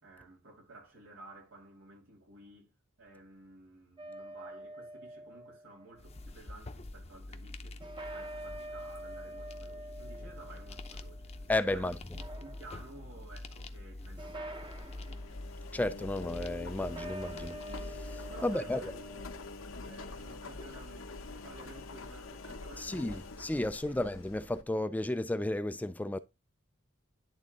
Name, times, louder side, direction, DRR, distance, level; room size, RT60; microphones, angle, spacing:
voice 1, 0.0-2.7 3.0-7.8 8.1-15.4 18.3-19.3 19.8-23.3 23.7-24.0, right 2 dB, 90° right, 3.1 m, -54 dB
sound 1, 4.0-6.0 7.8-11.5 12.0-13.0 14.2-15.3 16.8-19.5, right 1 dB, 25° right, 0.8 m, -46 dB
sound 2, 6.0-18.4, left 2 dB, 30° left, 0.7 m, -46 dB
voice 2, 11.5-12.0 15.7-18.9 22.8-26.2, left 1 dB, 10° left, 0.3 m, -33 dB
Engine, 14.6-24.6, left 3 dB, 80° left, 0.9 m, -45 dB
11.0 x 3.7 x 3.8 m
head